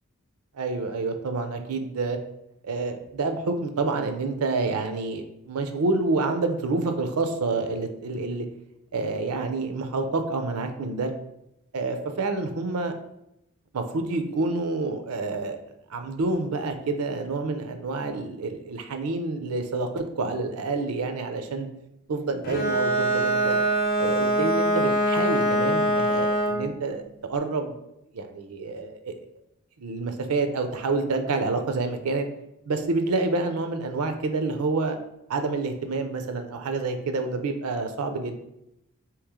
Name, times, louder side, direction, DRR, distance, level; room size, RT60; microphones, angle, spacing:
voice 1, 0.5-2.2 2.6-8.5 8.9-11.1 11.7-12.9 13.7-15.6 15.9-21.7 22.1-23.6 24.0-27.8 28.1-29.1 29.8-32.3 32.7-35.0 35.3-38.4, right 3 dB, 85° right, 6 dB, 0.5 m, -28 dB
Bowed string instrument, 22.4-26.7, right 1 dB, 45° left, 0.5 m, -23 dB
3.2 x 3.1 x 3.6 m, 0.83 s
head